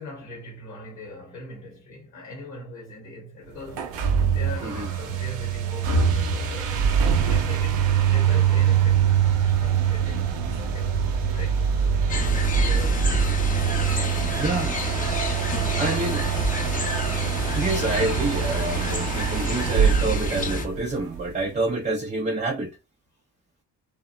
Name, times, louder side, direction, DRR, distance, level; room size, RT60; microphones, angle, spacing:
voice 1, 0.0-11.9 12.3-13.2 13.9-14.3 16.0-16.3, left 2 dB, 90° left, 0.9 m, -41 dB
sound 1, 3.7-21.2, right 7 dB, 65° right, 0.7 m, -24 dB
sound 2, 12.1-20.7, left 1 dB, 15° left, 0.7 m, -29 dB
voice 2, 14.4-14.7 15.8-16.2 17.5-22.7, right 2 dB, 15° right, 0.5 m, -27 dB
2.7 x 2.1 x 2.4 m
hypercardioid pair, 45°, 48 cm